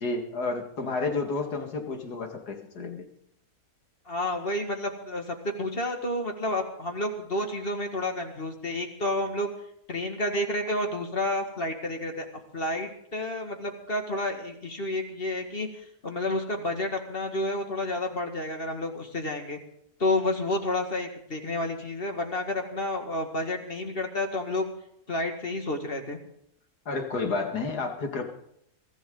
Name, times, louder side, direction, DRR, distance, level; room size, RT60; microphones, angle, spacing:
voice 1, 0.0-3.1 26.9-28.2, left 3 dB, 90° left, 4 dB, 2.6 m, -31 dB
voice 2, 4.1-9.5 9.9-12.3 12.5-19.6 20.0-24.7 25.1-26.2, left 1 dB, 35° left, 4 dB, 2.1 m, -30 dB
23.0 x 14.0 x 3.9 m, 0.73 s
omnidirectional pair, 1.6 m